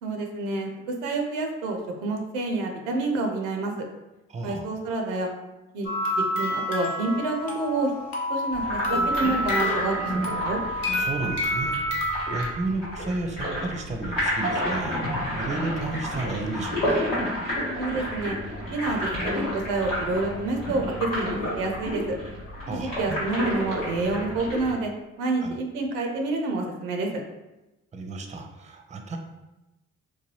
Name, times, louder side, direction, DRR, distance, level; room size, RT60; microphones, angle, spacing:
voice 1, 0.0-3.7 4.4-5.3 5.7-7.9 8.3-10.6 17.8-18.4 18.7-22.2 22.7-24.9 25.2-27.2, right 2 dB, 80° right, 3 dB, 0.5 m, -28 dB
voice 2, 4.3-4.7 10.8-15.0 15.4-17.1 22.7-23.0 25.4-25.5 27.9-29.2, right 2 dB, 20° right, 4 dB, 0.5 m, -32 dB
sound 1, 5.8-12.4, left 1 dB, 65° left, 0.8 m, -28 dB
sound 2, 8.5-24.7, equal, 85° left, 1.2 m, -30 dB
3.0 x 2.2 x 3.0 m, 0.99 s
hypercardioid pair, 40°, 38 cm